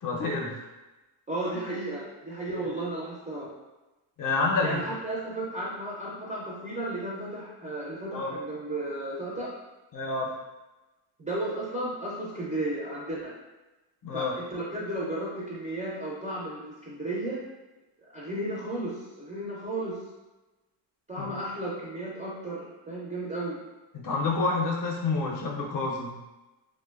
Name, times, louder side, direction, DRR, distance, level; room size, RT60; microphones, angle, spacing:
voice 1, 0.0-0.6 2.5-2.7 4.2-4.8 8.1-8.3 9.9-10.3 14.0-14.3 21.2-21.3 23.9-26.2, left 3 dB, 45° left, -1 dB, 0.5 m, -28 dB
voice 2, 1.3-3.5 4.6-9.5 11.2-13.3 14.1-17.4 18.1-20.0 21.1-23.6, right 1 dB, 15° right, -7 dB, 0.3 m, -34 dB
2.8 x 2.2 x 2.2 m, 1.1 s
cardioid pair, 120°, 48 cm